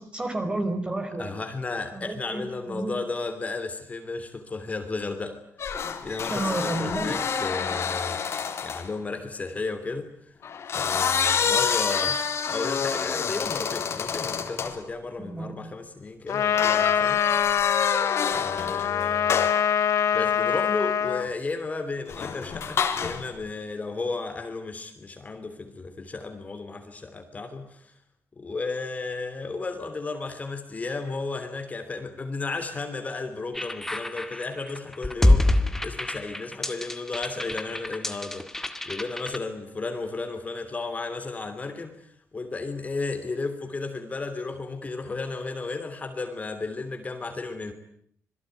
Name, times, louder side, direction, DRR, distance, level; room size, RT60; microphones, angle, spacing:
voice 1, 0.0-1.3 1.9-2.9 6.3-7.2 15.2-15.5, right 2 dB, 20° right, 4.7 m, -31 dB
voice 2, 1.2-5.4 6.0-10.1 10.7-17.3 18.3-19.5 20.1-27.9 28.4-38.5 38.9-47.7, left 3 dB, 25° left, 3.2 m, -34 dB
sound 1, 5.6-8.9 10.4-14.8 16.6-18.9 19.3-19.7 22.1-23.3, left 6 dB, 55° left, 3.7 m, -28 dB
Trumpet, 16.3-21.3, left 9 dB, 75° left, 1.8 m, -24 dB
sound 2, 33.5-39.4, left 1 dB, 10° left, 1.8 m, -26 dB
26.5 x 22.0 x 9.3 m
wide cardioid pair, 145°, 5 cm